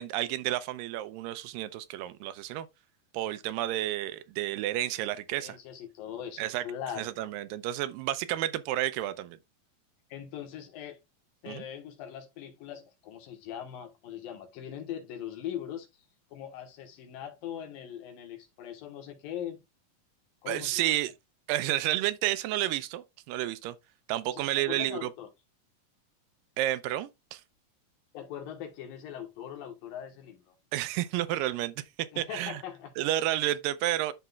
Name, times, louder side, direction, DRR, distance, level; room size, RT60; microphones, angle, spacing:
voice 1, 0.0-2.7 3.1-5.6 6.4-6.6 7.0-9.4 11.5-11.6 20.5-21.1 21.5-23.8 24.1-25.1 26.6-27.4 30.7-31.9 32.2-32.6 33.0-34.1, right 14 dB, 85° right, 2.3 m, -31 dB
voice 2, 5.3-7.1 10.1-11.0 11.4-15.9 16.3-19.6 20.4-20.9 24.3-25.3 28.1-30.6 32.1-32.9, left 9 dB, 90° left, 3.1 m, -41 dB
11.5 x 4.0 x 2.3 m
omnidirectional pair, 3.9 m